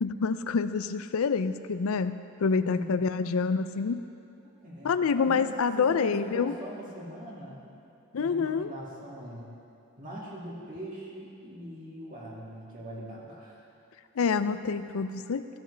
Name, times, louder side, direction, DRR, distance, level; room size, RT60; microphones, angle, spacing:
voice 1, 0.0-4.0 4.8-6.5 8.1-8.7 14.2-15.6, left 5 dB, 70° left, 12 dB, 0.4 m, -27 dB
voice 2, 2.6-3.3 4.4-7.7 8.2-9.5 10.0-13.7, right 1 dB, 40° right, -5 dB, 2.2 m, -42 dB
15.5 x 10.0 x 3.4 m, 2.7 s
head